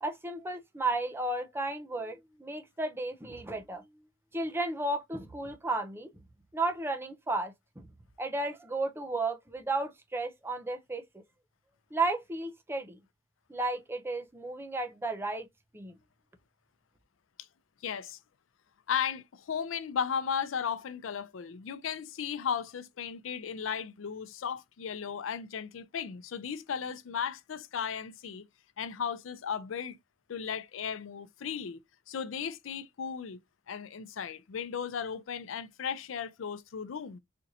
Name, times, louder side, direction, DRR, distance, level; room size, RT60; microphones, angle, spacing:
voice 1, 0.0-3.8 4.3-6.1 6.5-7.9 8.2-11.0 11.9-13.0 13.5-15.5 15.7-15.9, right 2 dB, 10° right, 0.5 m, -33 dB
voice 2, 17.8-18.2 18.9-28.4 28.8-30.0 30.3-31.8 32.1-33.4 33.7-37.2, left 7 dB, 90° left, 0.5 m, -35 dB
4.3 x 2.5 x 2.7 m
head